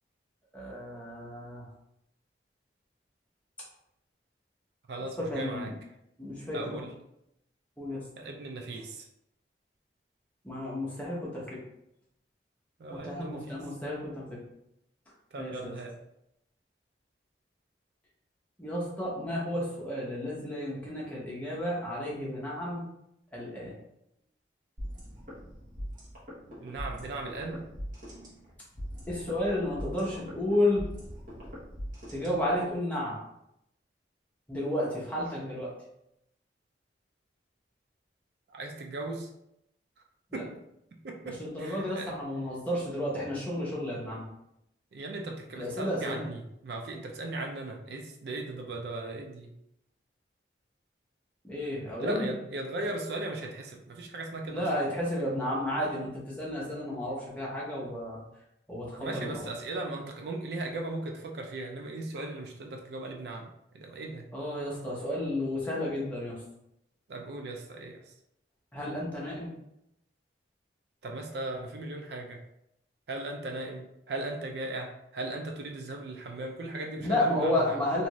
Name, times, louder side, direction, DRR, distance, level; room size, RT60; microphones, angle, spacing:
voice 1, 0.5-1.6 5.3-5.7 6.2-6.8 7.8-8.0 10.4-11.6 12.9-14.4 15.4-15.7 18.6-22.8 23.3-23.7 29.1-30.9 32.1-33.2 34.5-35.7 40.3-40.4 41.4-44.2 45.5-46.2 51.4-52.3 54.5-58.2 58.7-59.4 64.3-66.4 68.7-69.6 77.0-78.1, left 1 dB, 10° left, -6 dB, 0.8 m, -32 dB
voice 2, 4.9-5.7 6.5-6.9 8.2-9.1 12.8-13.6 15.3-16.0 26.6-27.7 38.5-39.3 40.3-40.6 41.0-42.2 44.9-49.5 52.0-54.7 58.9-64.3 67.1-68.1 71.0-72.4 73.1-77.8, right 2 dB, 65° right, 2 dB, 0.4 m, -37 dB
sound 1, 24.8-32.8, equal, 45° right, 0.9 m, -42 dB
2.7 x 2.4 x 3.0 m, 0.81 s
head